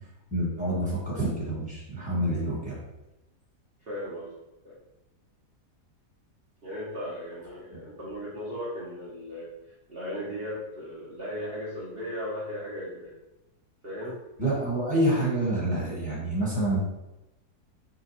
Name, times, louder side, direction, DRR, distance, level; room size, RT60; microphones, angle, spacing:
voice 1, 0.3-2.8 14.4-16.8, right 1 dB, 5° right, -7 dB, 1.1 m, -27 dB
voice 2, 3.9-4.3 4.6-4.8 6.6-9.5 9.9-13.1 13.8-14.2, equal, 45° right, -7 dB, 0.9 m, -36 dB
3.9 x 2.3 x 4.2 m, 0.97 s
omnidirectional pair, 1.7 m